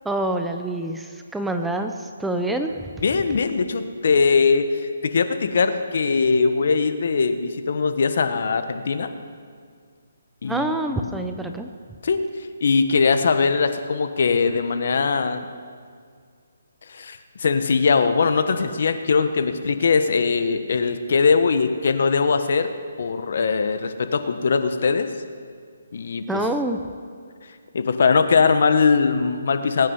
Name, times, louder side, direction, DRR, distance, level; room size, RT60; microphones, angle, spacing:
voice 1, 0.0-2.9 10.5-11.7 26.3-26.8, right 1 dB, 5° right, 5 dB, 0.6 m, -26 dB
voice 2, 3.0-9.1 10.4-11.3 12.0-12.2 12.6-15.4 16.9-22.7 23.0-25.1 25.9-26.4 27.7-29.9, left 5 dB, 60° left, 9 dB, 1.2 m, -21 dB
21.5 x 9.5 x 5.6 m, 2.1 s
hypercardioid pair, 160°, 0 cm